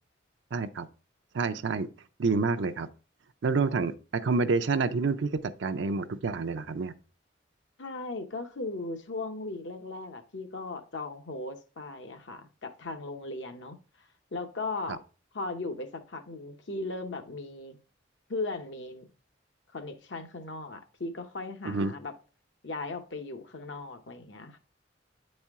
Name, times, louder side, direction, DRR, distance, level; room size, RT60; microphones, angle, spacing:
voice 1, 0.5-0.9 1.3-1.9 2.2-2.9 3.4-6.9 21.7-21.9, right 4 dB, 65° right, 0.5 m, -28 dB
voice 2, 7.8-13.8 14.3-15.0 15.3-17.8 18.3-19.1 19.7-22.1 22.6-24.6, left 3 dB, 65° left, 0.9 m, -37 dB
8.8 x 4.3 x 3.5 m
head